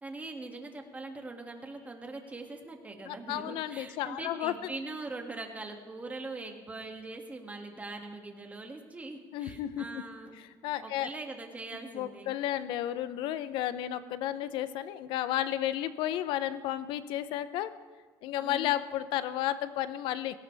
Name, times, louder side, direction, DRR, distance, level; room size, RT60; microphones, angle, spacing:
voice 1, 0.0-10.3 10.8-12.3 18.4-18.7, right 2 dB, 20° right, 3 dB, 2.2 m, -42 dB
voice 2, 3.1-4.6 9.3-9.9 10.4-11.1 11.9-17.7 18.2-20.4, left 12 dB, 80° left, 14 dB, 0.7 m, -32 dB
19.0 x 17.5 x 3.4 m, 1.5 s
cardioid pair, 115°, 8 cm